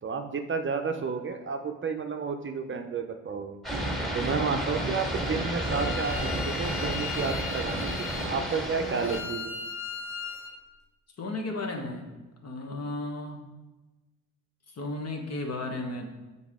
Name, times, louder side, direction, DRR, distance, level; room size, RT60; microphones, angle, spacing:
voice 1, 0.0-3.6 4.1-9.6, right 5 dB, 35° right, 5 dB, 0.7 m, -31 dB
sound 1, 3.6-9.2, right 1 dB, ahead, 2.0 m, -31 dB
Bowed string instrument, 5.2-10.6, left 5 dB, 75° left, 0.7 m, -39 dB
voice 2, 11.2-12.0 12.4-13.4 14.7-16.1, left 2 dB, 45° left, 3 dB, 1.3 m, -34 dB
6.8 x 4.2 x 3.7 m, 1.1 s
supercardioid pair, 60°, 36 cm